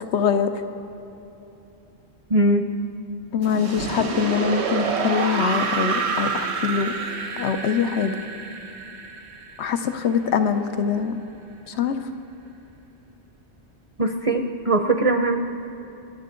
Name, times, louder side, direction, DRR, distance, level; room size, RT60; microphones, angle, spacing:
voice 1, 0.1-0.5 3.3-6.9 7.4-8.2 9.6-11.2 11.7-12.0, left 7 dB, 80° left, 8 dB, 1.1 m, -23 dB
voice 2, 2.3-2.7 14.0-15.4, right 2 dB, 40° right, 5 dB, 0.6 m, -20 dB
sound 1, 3.4-10.3, right 4 dB, 80° right, 1.3 m, -28 dB
28.0 x 10.5 x 3.8 m, 3.0 s
omnidirectional pair, 1.1 m